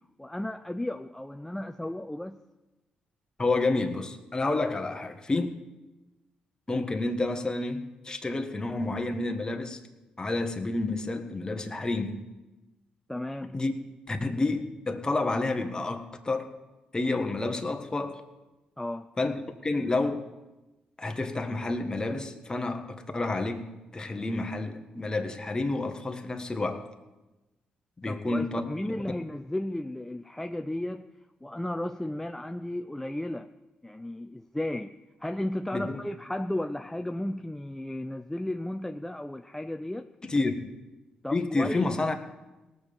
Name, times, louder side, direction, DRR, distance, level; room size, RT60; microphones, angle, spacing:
voice 1, 0.2-2.4 13.1-13.6 18.8-19.1 28.0-31.1 31.4-33.5 33.8-40.1 41.2-42.0, left 1 dB, 10° left, 6 dB, 0.5 m, -34 dB
voice 2, 3.4-5.6 6.7-9.8 10.2-12.2 13.5-13.7 14.1-16.5 16.9-18.2 19.2-19.4 19.6-20.2 21.0-23.7 23.9-26.9 28.0-28.6 35.7-36.0 40.2-40.7 41.3-42.1, left 2 dB, 25° left, 5 dB, 1.4 m, -29 dB
18.5 x 6.9 x 5.3 m, 1.1 s
supercardioid pair, 60°, 3 cm